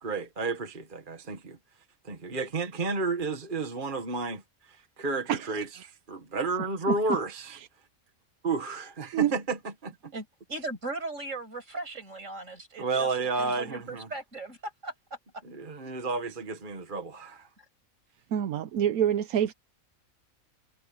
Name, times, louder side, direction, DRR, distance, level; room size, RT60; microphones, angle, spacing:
voice 1, 0.0-1.6 2.1-4.4 4.7-7.6 8.4-9.6 9.8-10.1 12.8-14.1 15.4-17.5, right 3 dB, 35° right, 1.7 m, -31 dB
voice 2, 5.3-5.8 6.9-7.0 9.1-9.3 18.3-19.5, right 10 dB, 85° right, 1.2 m, -27 dB
voice 3, 10.1-13.1 13.4-14.9 15.8-15.9 17.6-17.7, right 2 dB, 60° right, 6.7 m, -38 dB
omnidirectional pair, 1.5 m